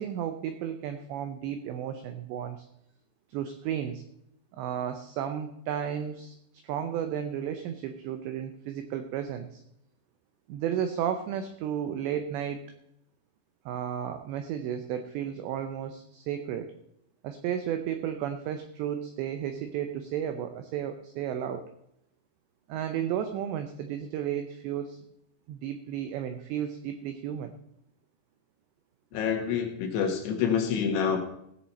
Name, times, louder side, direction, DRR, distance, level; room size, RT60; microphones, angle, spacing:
voice 1, 0.0-2.7 3.3-4.0 4.5-6.4 6.6-9.6 10.5-12.6 13.7-16.7 17.2-21.7 22.7-25.0 25.5-27.5, right 9 dB, 90° right, 8 dB, 2.5 m, -33 dB
voice 2, 29.1-31.2, left 7 dB, 70° left, 3 dB, 3.4 m, -27 dB
17.0 x 7.6 x 4.1 m, 0.77 s
omnidirectional pair, 6.0 m